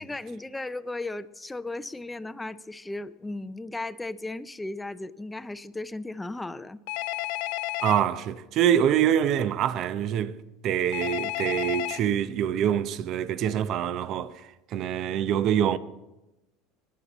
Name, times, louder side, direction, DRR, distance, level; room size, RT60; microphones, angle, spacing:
voice 1, 0.0-6.8, left 2 dB, 10° left, 0.5 m, -36 dB
Telephone, 6.9-8.0 10.9-12.0, left 19 dB, 70° left, 0.5 m, -31 dB
voice 2, 7.8-10.4 10.6-14.3 14.7-15.8, right 9 dB, 50° right, 0.6 m, -25 dB
21.0 x 7.3 x 4.1 m
supercardioid pair, 95°, 0 cm